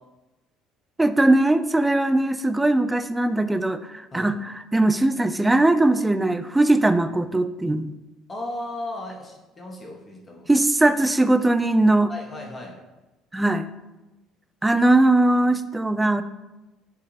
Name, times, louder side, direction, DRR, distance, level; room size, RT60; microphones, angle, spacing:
voice 1, 1.0-7.9 10.5-12.1 13.3-13.6 14.6-16.2, right 2 dB, 15° right, 10 dB, 0.3 m, -20 dB
voice 2, 8.3-10.4 12.1-12.7, left 1 dB, 30° left, 0 dB, 1.2 m, -35 dB
6.8 x 2.4 x 3.2 m, 1.0 s
hypercardioid pair, 60°, 0 cm